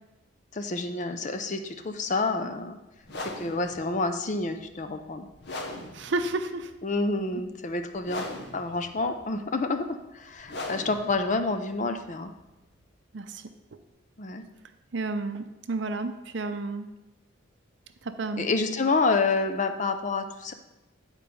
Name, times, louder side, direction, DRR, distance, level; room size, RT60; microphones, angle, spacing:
voice 1, 0.5-2.8 3.2-5.3 6.8-8.3 8.5-9.9 10.1-12.3 14.2-14.4 18.4-20.5, left 3 dB, 35° left, 7 dB, 0.5 m, -28 dB
sound 1, 3.0-12.9, left 2 dB, 55° left, 0.9 m, -41 dB
voice 2, 5.9-6.7 13.1-13.4 14.9-16.9 18.0-18.5, right 3 dB, 60° right, 9 dB, 0.5 m, -31 dB
9.4 x 4.5 x 5.3 m, 1.0 s
head